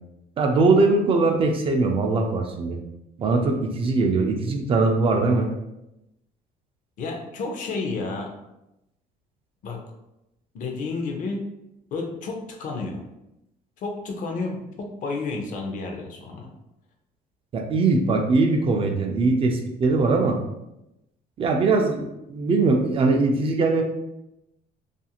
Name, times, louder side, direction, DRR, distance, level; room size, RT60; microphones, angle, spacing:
voice 1, 0.4-2.8 3.2-5.5 17.5-20.4 21.4-23.8, right 3 dB, 35° right, 3 dB, 0.3 m, -21 dB
voice 2, 7.0-8.3 9.6-9.8 10.5-11.5 11.9-13.0 13.8-16.5, left 3 dB, 50° left, 2 dB, 0.5 m, -31 dB
2.4 x 2.4 x 2.8 m, 0.88 s
cardioid pair, 140°, 16 cm